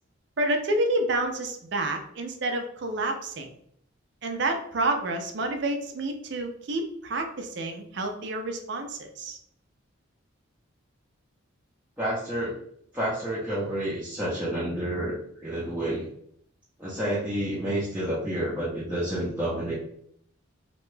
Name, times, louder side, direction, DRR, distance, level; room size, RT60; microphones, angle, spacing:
voice 1, 0.4-3.5 4.2-9.4, right 2 dB, 55° right, 4 dB, 0.5 m, -29 dB
voice 2, 12.0-12.6 12.9-16.1 16.8-19.7, right 1 dB, 10° right, -10 dB, 0.6 m, -29 dB
2.9 x 2.2 x 3.2 m, 0.67 s
head